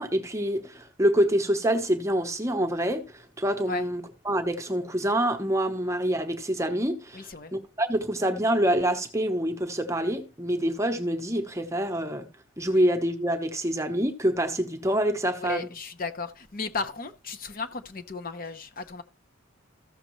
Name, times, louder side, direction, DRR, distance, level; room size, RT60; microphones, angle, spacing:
voice 1, 0.0-12.2 12.6-15.7, right 1 dB, 15° right, 0.9 m, -26 dB
voice 2, 7.1-7.5 15.4-19.0, left 3 dB, 40° left, 0.7 m, -35 dB
14.5 x 6.5 x 3.1 m
head